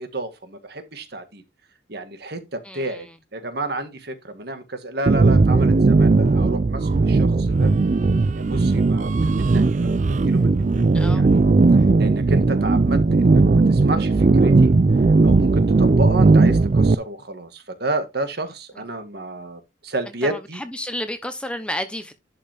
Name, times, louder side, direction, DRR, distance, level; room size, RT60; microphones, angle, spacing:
voice 1, 0.0-1.4 1.9-7.7 8.3-9.7 10.2-10.8 11.1-11.4 11.7-14.7 15.2-20.6, right 2 dB, 55° right, 1.7 m, -31 dB
voice 2, 2.7-3.0 10.9-11.2 20.2-22.1, left 1 dB, 5° left, 0.9 m, -31 dB
sound 1, 5.1-16.9, right 3 dB, 40° right, 0.4 m, -17 dB
11.5 x 5.3 x 3.5 m
head